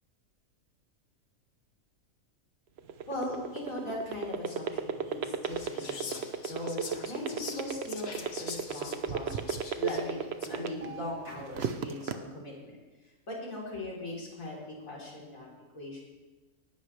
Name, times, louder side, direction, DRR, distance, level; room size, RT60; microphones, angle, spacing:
sound 1, 2.8-11.0 11.4-12.1, right 8 dB, 60° right, 0.9 m, -32 dB
voice 1, 3.1-9.4 9.8-12.8 13.3-15.5 15.7-16.0, left 1 dB, 85° left, -4 dB, 4.1 m, -39 dB
Whispering, 5.5-10.7, left 5 dB, 50° left, 1.3 m, -44 dB
19.5 x 11.5 x 3.3 m, 1.2 s
omnidirectional pair, 1.4 m